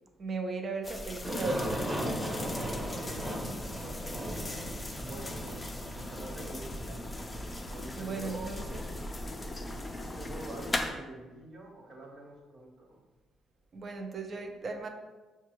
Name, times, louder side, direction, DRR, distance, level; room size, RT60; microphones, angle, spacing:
voice 1, 0.2-1.9 8.0-8.8 13.7-14.9, right 3 dB, 45° right, 5 dB, 0.5 m, -36 dB
sound 1, 0.8-10.9, left 1 dB, 20° left, 0.4 m, -39 dB
Aircraft, 1.2-7.9, equal, 10° right, 0.8 m, -37 dB
voice 2, 3.0-3.3 3.8-4.3 5.0-5.7 5.9-8.7 10.2-13.0, right 2 dB, 60° right, -1 dB, 1.1 m, -46 dB
5.7 x 2.2 x 3.0 m, 1.2 s
cardioid pair, 90°, 0 cm